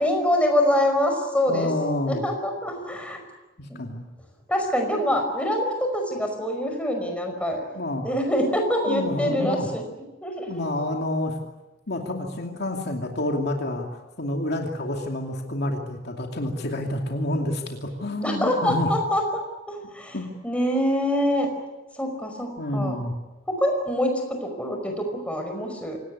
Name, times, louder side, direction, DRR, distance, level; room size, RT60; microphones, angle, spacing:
voice 1, 0.0-1.7 2.1-3.2 4.5-7.7 8.0-9.8 10.2-10.6 18.2-19.4 19.7-20.2 20.4-21.5 22.0-23.0 23.5-26.0, left 1 dB, 5° left, 3 dB, 5.2 m, -25 dB
voice 2, 1.5-2.2 3.6-4.1 7.7-8.1 8.9-9.7 10.5-11.3 11.9-13.9 14.2-18.9 20.1-20.3 22.6-23.1, left 1 dB, 55° left, 2 dB, 2.6 m, -28 dB
26.0 x 18.5 x 9.8 m, 1.1 s
head